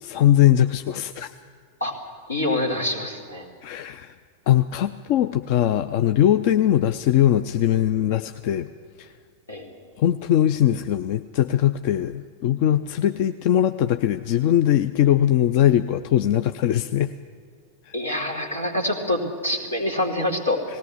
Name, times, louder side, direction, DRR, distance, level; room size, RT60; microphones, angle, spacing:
voice 1, 0.0-1.3 3.6-4.1 4.5-8.7 9.0-9.1 10.0-17.1 17.9-18.0, left 11 dB, 45° left, 11 dB, 0.5 m, -21 dB
voice 2, 2.3-3.5 9.5-9.9 17.9-20.6, left 1 dB, 80° left, 2 dB, 2.6 m, -26 dB
19.0 x 17.0 x 8.2 m, 2.1 s
figure-of-eight pair, 90°, 0 cm